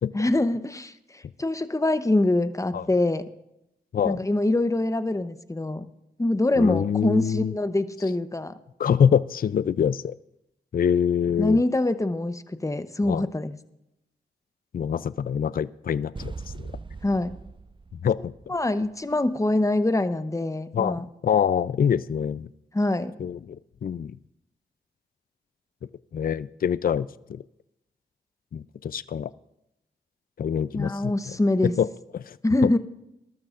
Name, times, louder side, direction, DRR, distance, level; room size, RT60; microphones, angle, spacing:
voice 1, 0.1-3.2 4.0-5.9 6.2-8.5 11.4-13.6 17.0-17.3 18.5-21.0 22.7-23.1 30.7-31.7 32.4-32.8, left 2 dB, 15° left, 11 dB, 0.9 m, -24 dB
voice 2, 6.6-7.5 8.8-10.1 10.7-11.6 13.1-13.3 14.7-16.7 18.0-18.3 20.7-22.5 23.2-23.6 23.8-24.1 26.1-27.4 28.5-29.3 30.4-31.1 31.8-31.9 32.1-32.4, left 8 dB, 55° left, 18 dB, 0.4 m, -25 dB
sound 1, 16.2-19.1, right 4 dB, 25° right, 0.5 m, -40 dB
20.5 x 12.5 x 2.5 m, 0.85 s
cardioid pair, 40°, 18 cm